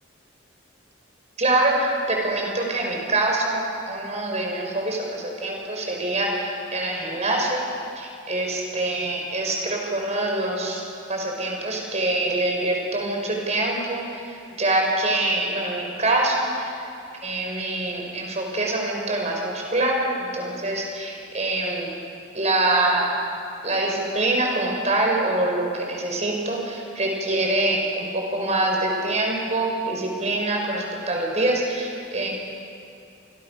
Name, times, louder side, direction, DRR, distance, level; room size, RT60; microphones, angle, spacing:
voice 1, 1.4-7.7 8.0-10.8 11.1-16.7 17.2-20.0 20.3-21.9 22.3-23.1 23.6-32.3, right 2 dB, 35° right, 0 dB, 5.7 m, -25 dB
27.0 x 25.5 x 6.7 m, 2.5 s
head